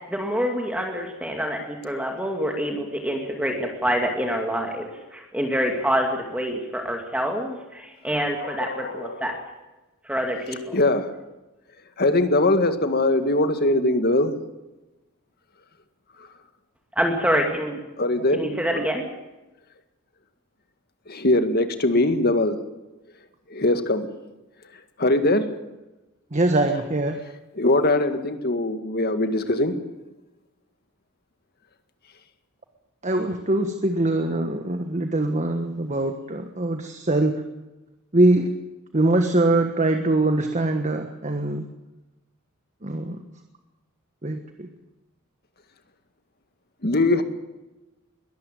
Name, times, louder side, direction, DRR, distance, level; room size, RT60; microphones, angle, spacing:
voice 1, 0.1-9.3 10.0-10.8 16.9-17.8 18.3-19.0, equal, 5° right, 2 dB, 2.4 m, -26 dB
voice 2, 8.4-9.4 10.7-11.1 12.0-14.3 18.0-18.4 21.1-22.6 23.5-24.1 25.0-25.5 27.6-29.7 46.8-47.2, left 2 dB, 45° left, 9 dB, 1.9 m, -21 dB
voice 3, 18.4-18.8 26.3-27.2 33.0-37.4 38.1-38.5 38.9-41.6 42.8-43.2 44.2-44.7, right 2 dB, 35° right, 6 dB, 1.4 m, -23 dB
21.5 x 13.5 x 9.2 m, 1.0 s
head